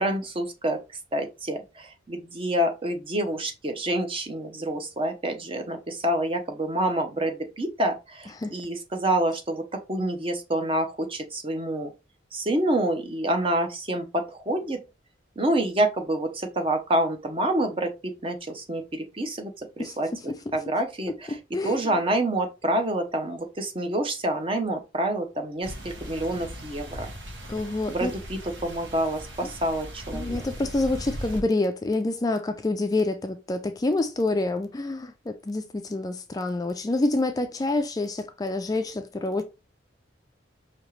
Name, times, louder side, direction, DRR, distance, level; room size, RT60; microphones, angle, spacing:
voice 1, 0.0-11.9 12.3-14.8 15.4-21.4 21.6-27.1 27.9-30.4, right 1 dB, 30° right, 0.7 m, -27 dB
sound 1, 25.6-31.4, equal, 70° right, 1.3 m, -39 dB
voice 2, 27.5-28.1 30.1-39.4, left 2 dB, 20° left, 0.3 m, -27 dB
5.2 x 2.8 x 3.1 m
head